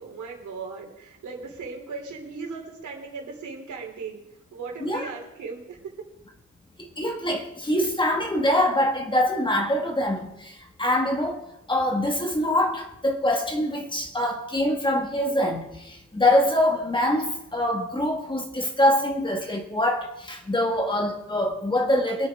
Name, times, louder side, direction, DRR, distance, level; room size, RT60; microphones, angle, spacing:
voice 1, 0.0-4.2 4.5-5.9, right 4 dB, 75° right, 3.2 m, -37 dB
voice 2, 6.8-10.5 10.8-11.4 11.7-22.3, left 1 dB, 15° left, 1.7 m, -24 dB
23.5 x 8.6 x 3.6 m
cardioid pair, 125°, 30 cm